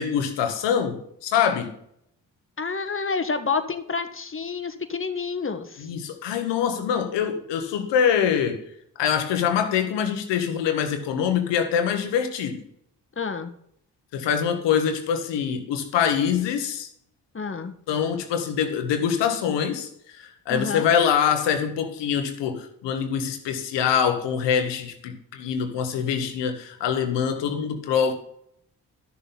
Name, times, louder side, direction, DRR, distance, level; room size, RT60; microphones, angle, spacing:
voice 1, 0.0-1.7 5.8-8.7 9.0-12.6 14.1-16.9 17.9-28.1, left 8 dB, 85° left, 1.3 m, -24 dB
voice 2, 2.6-5.9 13.2-13.5 17.3-17.7 20.5-20.9, left 5 dB, 30° left, 1.4 m, -29 dB
12.0 x 7.0 x 4.0 m
supercardioid pair, 45°, 42 cm